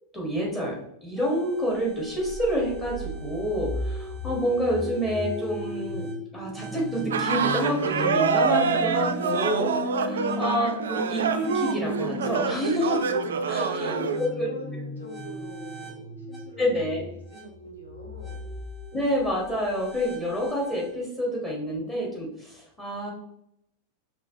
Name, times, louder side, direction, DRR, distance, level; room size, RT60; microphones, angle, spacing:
voice 1, 0.1-9.7 10.0-13.0 13.5-14.5 16.6-17.1 18.9-23.1, equal, 10° left, -3 dB, 1.6 m, -28 dB
sound 1, 1.2-20.9, left 1 dB, 5° right, 1.4 m, -36 dB
sound 2, 7.1-14.2, right 6 dB, 65° right, 0.3 m, -26 dB
voice 2, 9.0-9.5 10.0-10.5 13.4-18.4, left 2 dB, 75° left, -3 dB, 1.5 m, -43 dB
4.9 x 3.1 x 2.9 m, 0.78 s
figure-of-eight pair, 90°, 0 cm